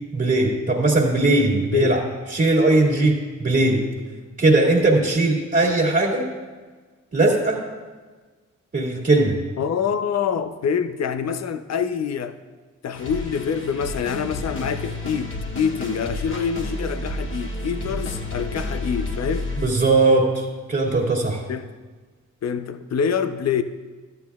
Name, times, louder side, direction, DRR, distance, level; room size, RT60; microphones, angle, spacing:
voice 1, 0.1-2.0 2.3-3.8 4.4-6.3 7.1-7.6 8.7-9.4 19.6-21.4, right 2 dB, 30° right, -3 dB, 2.1 m, -19 dB
voice 2, 9.6-12.4 12.8-19.5 21.5-21.7 22.4-23.6, left 7 dB, 55° left, 11 dB, 0.7 m, -25 dB
sound 1, 12.9-19.7, left 2 dB, 40° left, 1.7 m, -30 dB
13.0 x 9.2 x 2.4 m, 1.4 s
supercardioid pair, 45°, 32 cm